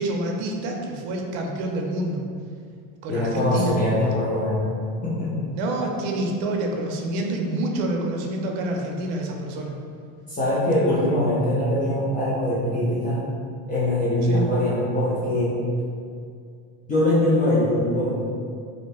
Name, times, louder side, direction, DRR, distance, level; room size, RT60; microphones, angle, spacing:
voice 1, 0.0-2.2 3.0-3.7 5.5-9.8 14.3-14.4, right 1 dB, 70° right, 1 dB, 0.6 m, -27 dB
voice 2, 3.1-4.8 5.0-5.3 10.3-13.2 13.7-15.6 16.9-18.3, left 1 dB, 20° left, -10 dB, 0.4 m, -22 dB
2.5 x 2.1 x 3.2 m, 2.3 s
supercardioid pair, 135°, 39 cm